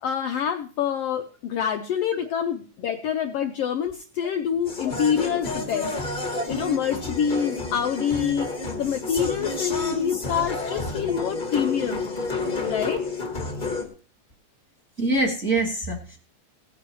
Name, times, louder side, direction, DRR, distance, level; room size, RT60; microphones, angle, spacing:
voice 1, 0.0-5.9 6.5-12.1 12.6-13.0, left 8 dB, 85° left, 5 dB, 1.3 m, -26 dB
sound 1, 4.7-13.9, left 3 dB, 35° left, 0.7 m, -30 dB
voice 2, 15.0-16.2, right 2 dB, 30° right, 1 dB, 1.5 m, -24 dB
17.5 x 9.4 x 3.0 m, 0.37 s
omnidirectional pair, 3.6 m